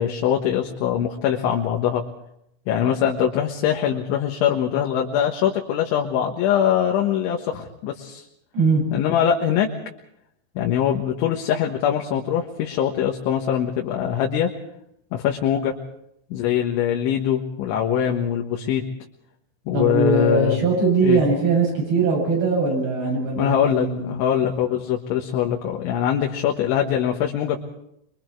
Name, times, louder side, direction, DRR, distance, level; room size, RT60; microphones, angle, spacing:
voice 1, 0.0-2.0 2.7-8.3 8.9-9.7 10.6-14.5 15.1-15.8 16.3-18.8 19.7-20.6 21.0-21.2 23.4-27.6, left 9 dB, 80° left, 0 dB, 3.8 m, -22 dB
voice 2, 19.7-24.2, right 4 dB, 60° right, -1 dB, 10.0 m, -21 dB
26.5 x 23.5 x 4.6 m, 0.76 s
omnidirectional pair, 5.3 m